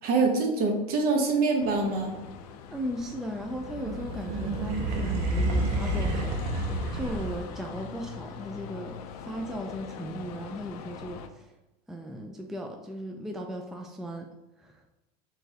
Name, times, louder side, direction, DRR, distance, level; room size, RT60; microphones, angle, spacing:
voice 1, 0.0-2.1, right 3 dB, 50° right, 2 dB, 1.0 m, -25 dB
sound 1, 1.6-11.3, left 7 dB, 85° left, 0.4 m, -43 dB
voice 2, 2.7-11.5 11.9-14.3 14.6-14.8, equal, ahead, 3 dB, 0.3 m, -37 dB
sound 2, 3.5-7.7, right 1 dB, 85° right, 0.7 m, -29 dB
4.4 x 3.3 x 2.8 m, 1.0 s
supercardioid pair, 110°, 19 cm